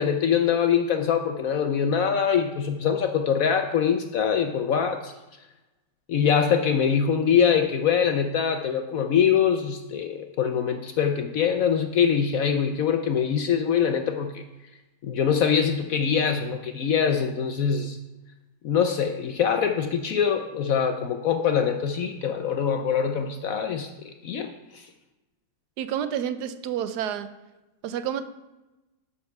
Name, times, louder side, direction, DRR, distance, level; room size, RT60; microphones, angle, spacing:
voice 1, 0.0-5.1 6.1-14.4 15.0-18.0 18.6-24.9, left 7 dB, 65° left, 6 dB, 0.9 m, -24 dB
voice 2, 25.8-27.3 27.8-28.3, right 9 dB, 70° right, 11 dB, 1.2 m, -29 dB
13.0 x 4.4 x 5.8 m, 1.0 s
omnidirectional pair, 1.9 m